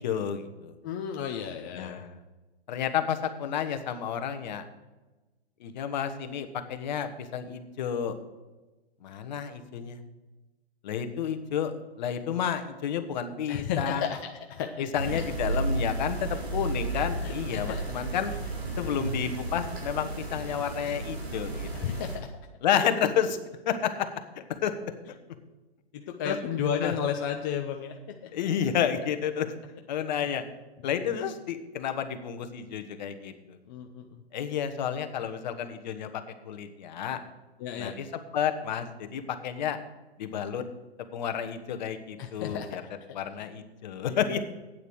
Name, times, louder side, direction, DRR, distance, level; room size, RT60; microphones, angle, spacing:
voice 1, 0.0-0.7 1.7-2.2 2.7-4.6 5.6-8.2 9.0-10.0 10.8-11.7 12.0-14.1 14.9-18.3 18.8-22.0 22.6-23.4 23.7-24.1 24.6-24.7 26.2-26.4 26.8-26.9 28.3-29.5 29.9-30.4 30.8-33.6 34.3-37.2 37.8-39.8 40.2-40.6 41.1-42.8 43.1-44.4, left 8 dB, 45° left, 8 dB, 1.2 m, -31 dB
voice 2, 0.8-2.0 13.5-15.2 17.2-17.8 18.8-19.1 21.8-22.3 25.9-28.3 33.7-34.2 37.6-38.0 42.2-42.8 44.1-44.4, left 7 dB, 20° left, 4 dB, 0.5 m, -33 dB
sound 1, 15.0-22.2, right 2 dB, 75° right, 4.1 m, -33 dB
8.9 x 8.1 x 6.2 m, 1.2 s
hypercardioid pair, 140°, 32 cm